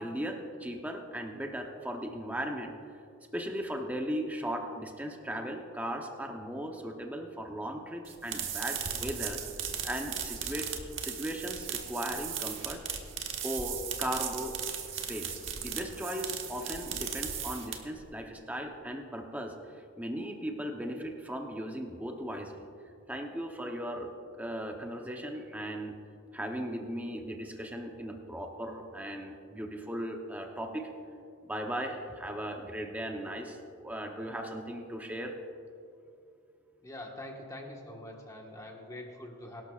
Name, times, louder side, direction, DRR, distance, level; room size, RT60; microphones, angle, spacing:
voice 1, 0.0-2.7 3.3-9.4 9.8-12.8 13.4-14.6 14.9-22.7 23.1-24.1 24.4-26.0 26.3-30.9 31.4-35.3, equal, 5° right, 2 dB, 0.8 m, -37 dB
sound 1, 8.0-18.0, right 8 dB, 60° right, 1.3 m, -37 dB
voice 2, 36.8-39.6, left 1 dB, 15° left, 0 dB, 1.4 m, -44 dB
23.0 x 12.0 x 2.4 m, 2.5 s
head